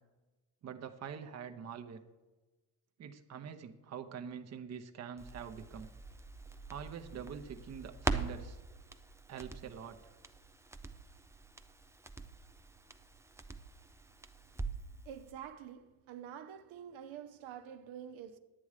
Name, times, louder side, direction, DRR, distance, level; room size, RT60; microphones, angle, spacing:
voice 1, 0.6-2.0 3.0-5.9 6.7-8.6 9.3-10.1, right 7 dB, 35° right, 0.8 m, -45 dB
Crackle, 5.2-15.0 15.3-15.4, right 3 dB, 5° right, 0.4 m, -43 dB
voice 2, 15.0-18.4, right 9 dB, 70° right, 0.9 m, -47 dB
10.5 x 8.6 x 4.8 m
cardioid pair, 105°, 48 cm